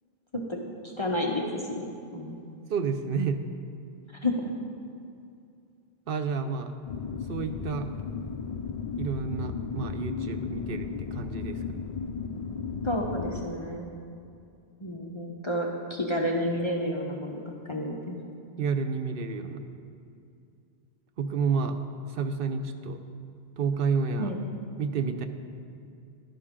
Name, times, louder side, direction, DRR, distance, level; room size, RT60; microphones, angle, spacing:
voice 1, 0.8-2.4 4.2-4.5 12.8-13.8 14.8-18.2 24.2-24.4, left 1 dB, 30° left, -1 dB, 0.8 m, -30 dB
voice 2, 2.7-3.4 6.1-6.7 7.3-7.9 9.0-11.8 18.6-19.6 21.2-21.8 22.1-23.0 23.6-24.3 24.8-25.3, right 5 dB, 65° right, 7 dB, 0.8 m, -30 dB
sound 1, 6.9-13.5, left 5 dB, 55° left, 0.4 m, -35 dB
11.5 x 11.0 x 3.7 m, 2.5 s
omnidirectional pair, 1.1 m